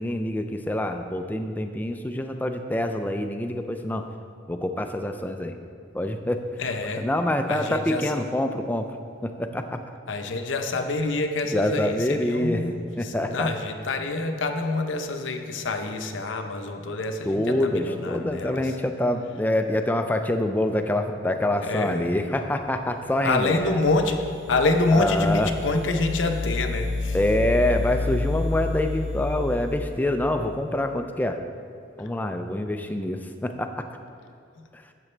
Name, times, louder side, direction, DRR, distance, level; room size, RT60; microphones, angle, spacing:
voice 1, 0.0-4.0 4.5-5.6 5.9-6.4 7.0-8.9 9.2-9.8 11.5-12.6 13.0-13.5 17.2-23.8 24.9-25.5 27.1-31.4 32.0-33.8 34.7-34.8, left 1 dB, 10° left, 6 dB, 0.4 m, -26 dB
voice 2, 6.6-7.1 7.5-8.1 10.1-12.8 13.0-18.7 21.6-22.1 23.2-27.2, left 2 dB, 80° left, 5 dB, 0.7 m, -26 dB
sound 1, 23.1-30.6, left 3 dB, 65° right, 0.7 m, -31 dB
12.0 x 7.5 x 3.3 m, 2.4 s
head